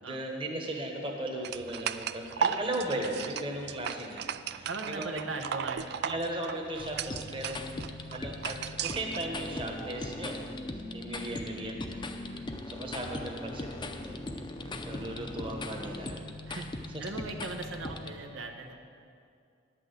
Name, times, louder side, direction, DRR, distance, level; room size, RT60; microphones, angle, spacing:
voice 1, 0.0-5.2 6.0-7.8 8.1-10.5 10.9-12.0 12.7-14.3 14.9-16.2 16.5-16.6 16.9-17.0, right 1 dB, 25° right, 1 dB, 1.2 m, -37 dB
sound 1, 1.4-9.2, right 8 dB, 55° right, 0.3 m, -36 dB
voice 2, 4.7-6.1 12.3-12.7 14.6-15.3 16.4-16.7 17.0-18.7, right 3 dB, 90° right, 3 dB, 0.9 m, -40 dB
sound 2, 6.8-18.1, left 2 dB, 25° left, 0.5 m, -39 dB
11.0 x 6.1 x 8.1 m, 2.3 s
head